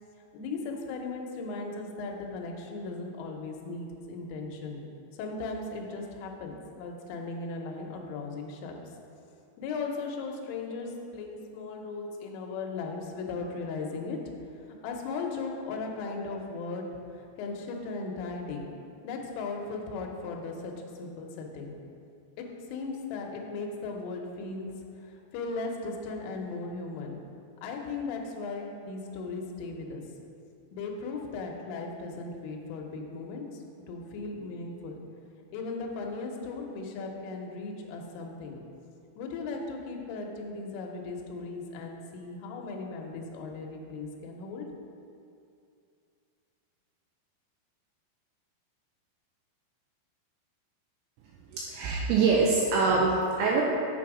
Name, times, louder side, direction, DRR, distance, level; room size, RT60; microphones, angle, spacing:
voice 1, 0.3-4.8 5.2-8.8 9.6-14.2 14.7-16.9 17.1-18.6 19.0-20.7 21.0-21.8 22.4-24.7 25.1-27.2 27.6-30.0 30.7-35.1 35.5-38.6 39.2-44.7, left 3 dB, 80° left, 1 dB, 3.3 m, -37 dB
voice 2, 51.5-53.6, right 4 dB, 85° right, -2 dB, 2.6 m, -24 dB
6.9 x 6.9 x 4.8 m, 2.5 s
omnidirectional pair, 5.9 m